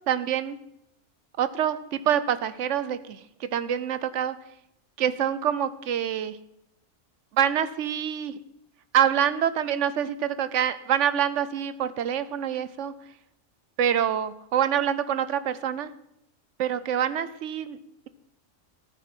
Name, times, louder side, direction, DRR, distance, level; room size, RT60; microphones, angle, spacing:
voice 1, 0.1-0.6 1.4-1.8 2.1-4.4 5.0-6.4 7.3-8.4 8.9-12.9 13.8-15.9 16.6-17.8, right 9 dB, 70° right, 14 dB, 1.0 m, -26 dB
13.5 x 9.1 x 4.4 m, 0.78 s
omnidirectional pair, 1.3 m